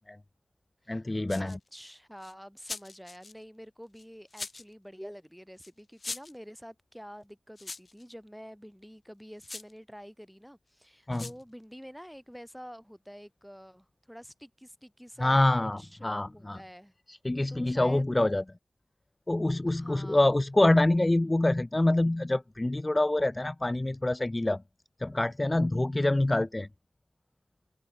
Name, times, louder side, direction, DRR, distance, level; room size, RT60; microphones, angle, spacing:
voice 1, 0.9-1.6 11.1-11.3 15.2-16.6 17.1-18.4 19.3-24.6 25.0-26.7, left 1 dB, 20° left, 0.4 m, -26 dB
sound 1, 1.3-1.7 2.2-3.3 4.0-4.7 5.6-5.7 6.0-6.4 7.6-8.0 9.4-9.7 11.1-11.4, left 3 dB, 50° left, 0.7 m, -41 dB
voice 2, 1.4-16.9 17.5-18.1 19.7-20.3, equal, ahead, 3.2 m, -48 dB
wide cardioid pair, 100°, 0 cm